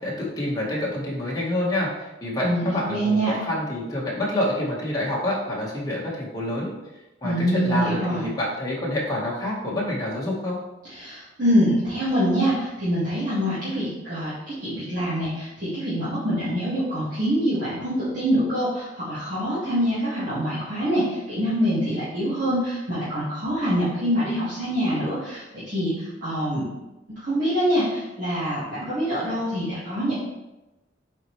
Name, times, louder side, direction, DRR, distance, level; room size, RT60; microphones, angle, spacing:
voice 1, 0.0-6.7 7.2-10.6, left 1 dB, 20° left, -5 dB, 1.5 m, -27 dB
voice 2, 2.4-3.3 7.2-8.2 10.8-26.6 27.2-30.1, equal, 45° right, -13 dB, 2.0 m, -25 dB
7.5 x 4.4 x 3.2 m, 1.0 s
head